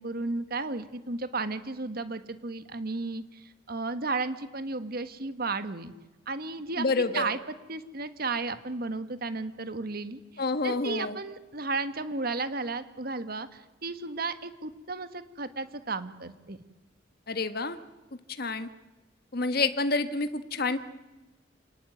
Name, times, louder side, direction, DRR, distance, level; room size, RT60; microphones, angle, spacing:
voice 1, 0.0-5.9 6.3-6.8 7.1-7.4 7.7-10.2 10.6-16.6, right 3 dB, 50° right, 11 dB, 1.5 m, -33 dB
voice 2, 6.8-7.3 10.4-11.2 17.3-17.8 18.4-18.7 19.3-20.8, left 3 dB, 55° left, 10 dB, 1.3 m, -28 dB
27.5 x 19.0 x 9.4 m, 1.1 s
head